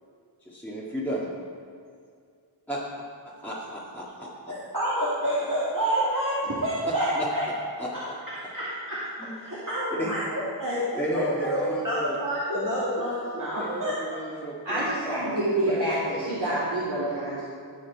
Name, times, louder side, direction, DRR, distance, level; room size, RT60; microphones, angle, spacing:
voice 1, 0.4-1.3 2.7-2.8 3.4-4.5 6.8-7.3 7.8-7.9 9.2-9.3 10.0-10.2 10.9-12.2 13.5-16.6, equal, 5° left, -7 dB, 1.8 m, -33 dB
voice 2, 4.5-7.4 7.9-8.0 8.4-9.0 9.4-13.9, equal, 40° right, -10 dB, 2.5 m, -28 dB
voice 3, 14.6-17.4, right 1 dB, 60° right, -11 dB, 3.0 m, -27 dB
17.5 x 6.4 x 4.7 m, 2.3 s
wide cardioid pair, 45°, 47 cm